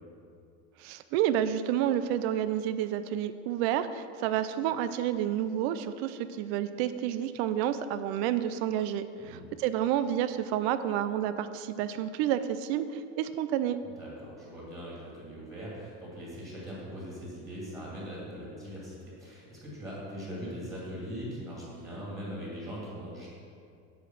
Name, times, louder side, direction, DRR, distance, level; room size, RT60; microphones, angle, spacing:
voice 1, 0.8-13.8, right 10 dB, 80° right, 12 dB, 0.6 m, -30 dB
voice 2, 13.8-23.3, equal, 10° right, -7 dB, 2.4 m, -41 dB
8.2 x 4.9 x 7.3 m, 2.4 s
cardioid pair, 170°, 31 cm